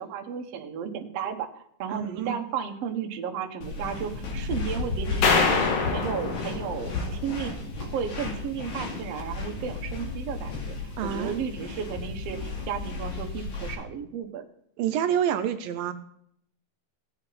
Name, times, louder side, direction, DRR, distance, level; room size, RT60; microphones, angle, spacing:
voice 1, 0.0-1.5 1.8-5.5 5.9-10.7 11.0-14.4, right 7 dB, 60° right, 4 dB, 1.7 m, -33 dB
voice 2, 1.9-2.4 11.0-11.3 14.8-15.9, right 9 dB, 80° right, 9 dB, 2.3 m, -27 dB
sound 1, 3.6-13.7, left 3 dB, 55° left, 3.7 m, -34 dB
sound 2, 5.2-7.6, left 4 dB, 70° left, 3.3 m, -25 dB
18.0 x 7.9 x 4.1 m, 0.69 s
omnidirectional pair, 4.2 m